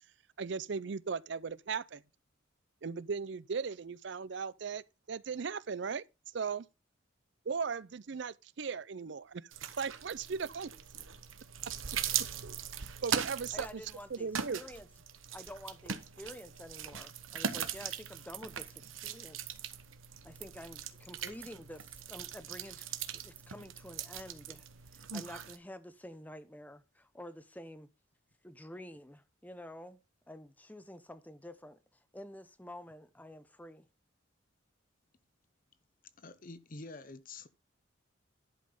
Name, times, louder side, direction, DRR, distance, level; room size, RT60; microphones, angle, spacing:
voice 1, 0.4-2.0 2.8-4.8 5.1-6.0 6.3-6.7 7.5-9.5 9.8-10.7 12.4-12.6 13.0-13.8 14.1-14.6, right 5 dB, 60° right, 0.5 m, -37 dB
sound 1, 9.5-25.6, right 8 dB, 80° right, 1.1 m, -40 dB
voice 2, 13.5-14.9 15.3-19.6 20.2-24.7 24.9-27.9 28.4-30.0 30.3-33.9, left 1 dB, 10° left, 0.8 m, -49 dB
voice 3, 36.2-37.5, left 3 dB, 45° left, 0.8 m, -47 dB
11.5 x 5.3 x 5.4 m
head